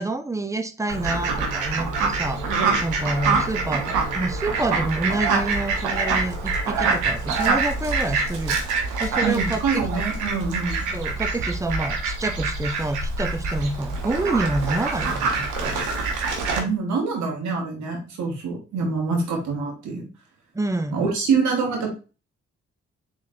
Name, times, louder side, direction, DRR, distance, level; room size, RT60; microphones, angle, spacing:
voice 1, 0.0-8.6 9.0-9.8 10.9-15.8 20.5-21.1, right 2 dB, 10° right, 8 dB, 0.6 m, -28 dB
Fowl, 0.9-16.6, right 4 dB, 90° right, 0.8 m, -25 dB
voice 2, 9.2-10.8 16.6-20.1 20.9-21.9, right 5 dB, 70° right, 1 dB, 1.1 m, -25 dB
3.8 x 3.2 x 2.6 m, 0.33 s
supercardioid pair, 45°, 30 cm